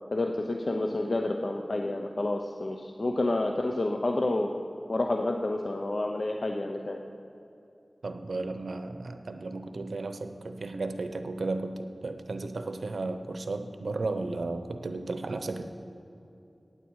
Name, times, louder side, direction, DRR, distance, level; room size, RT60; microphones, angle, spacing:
voice 1, 0.1-4.5 4.9-7.0, left 2 dB, 60° left, 3 dB, 0.7 m, -29 dB
voice 2, 8.0-15.6, right 3 dB, 90° right, 8 dB, 0.7 m, -34 dB
15.5 x 9.9 x 4.7 m, 2.8 s
wide cardioid pair, 60°, 0 cm